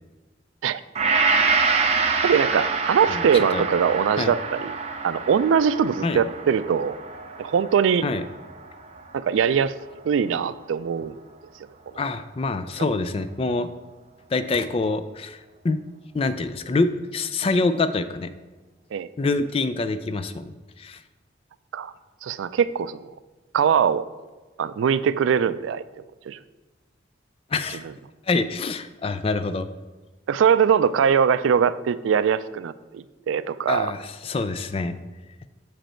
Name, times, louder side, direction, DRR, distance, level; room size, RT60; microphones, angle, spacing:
Gong, 0.9-9.3 9.7-9.8, right 4 dB, 35° right, 0.5 m, -26 dB
voice 1, 2.2-4.8 5.0-7.0 7.4-8.0 9.1-9.7 10.0-11.2 18.9-19.1 21.7-21.9 22.2-23.0 23.5-24.0 24.6-25.8 26.3-26.4 30.3-33.9, right 7 dB, 85° right, 15 dB, 0.3 m, -21 dB
voice 2, 3.1-3.7 4.2-4.3 6.0-6.2 8.0-8.2 12.0-13.7 14.3-15.4 15.6-15.8 16.1-18.3 19.2-21.0 27.5-27.8 28.3-29.7 33.7-35.0, left 3 dB, 30° left, 11 dB, 0.3 m, -26 dB
7.4 x 5.2 x 4.4 m, 1.2 s
head